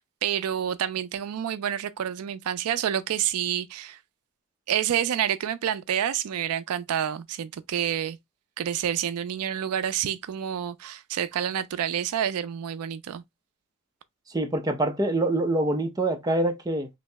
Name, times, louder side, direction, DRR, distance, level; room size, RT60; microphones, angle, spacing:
voice 1, 0.2-4.0 4.7-8.2 8.6-13.2, right 9 dB, 80° right, 0.4 m, -28 dB
voice 2, 14.3-16.9, right 1 dB, 15° right, 0.6 m, -25 dB
3.0 x 2.7 x 3.2 m
head